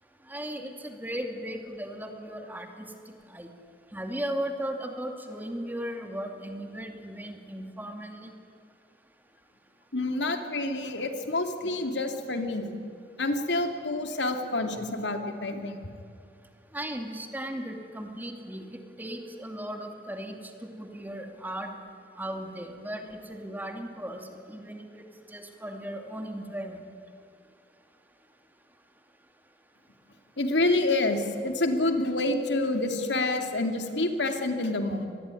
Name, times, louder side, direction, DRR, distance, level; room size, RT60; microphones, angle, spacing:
voice 1, 0.3-2.9 3.3-3.5 3.9-8.3 16.7-21.7 22.2-26.8, right 1 dB, 10° right, 4 dB, 2.5 m, -37 dB
voice 2, 9.9-12.7 13.2-15.8 30.4-35.1, left 2 dB, 85° left, 5 dB, 2.8 m, -28 dB
25.5 x 20.5 x 9.9 m, 2.3 s
head